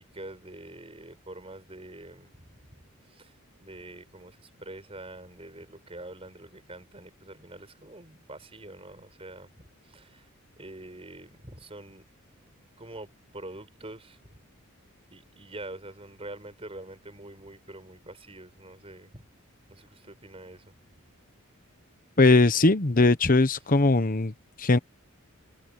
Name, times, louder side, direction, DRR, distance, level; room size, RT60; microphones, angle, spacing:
voice 1, 0.0-2.3 3.1-10.3 10.6-12.0 12.8-14.4 15.1-19.3 19.7-20.7, right 2 dB, 25° right, 5.2 m, -45 dB
voice 2, 22.2-24.8, left 3 dB, 40° left, 1.1 m, -20 dB
head